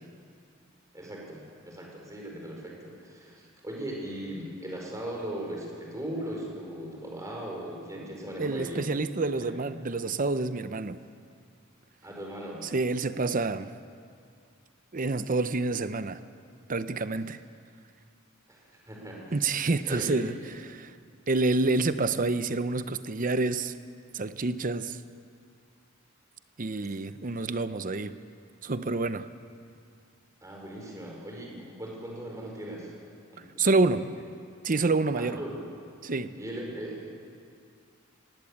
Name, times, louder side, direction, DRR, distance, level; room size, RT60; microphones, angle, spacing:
voice 1, 0.9-9.0 9.3-9.7 12.0-12.6 18.5-19.4 19.8-20.3 30.4-32.9 33.3-34.0 35.2-35.6 36.3-37.1, right 1 dB, 15° right, -1 dB, 4.7 m, -39 dB
voice 2, 8.4-11.0 12.6-13.7 14.9-16.2 16.7-17.4 19.3-20.3 20.6-20.9 21.3-23.7 24.1-25.0 26.6-28.2 28.6-29.3 33.6-34.1 34.6-35.4 36.0-36.4, right 3 dB, 40° right, 12 dB, 0.7 m, -28 dB
20.0 x 17.0 x 8.6 m, 2.3 s
head